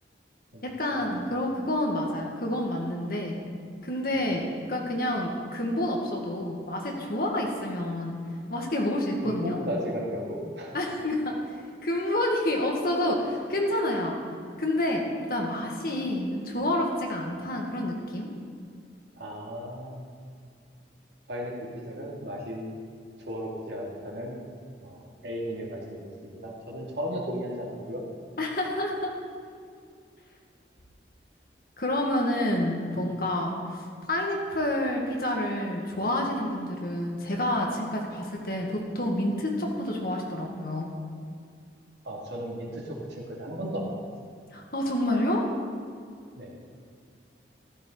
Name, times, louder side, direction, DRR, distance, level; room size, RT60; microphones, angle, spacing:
voice 1, 0.6-3.4 3.8-8.2 8.5-9.6 10.7-11.3 11.8-14.1 14.6-15.0 15.3-18.3 28.4-29.1 31.8-40.9 44.5-45.5, left 1 dB, 50° left, 0 dB, 1.8 m, -28 dB
voice 2, 9.2-10.7 19.2-20.1 21.3-22.7 23.2-24.4 24.8-28.0 42.0-44.0 46.3-46.5, equal, 70° right, -2 dB, 2.4 m, -35 dB
14.0 x 12.5 x 4.0 m, 2.3 s
head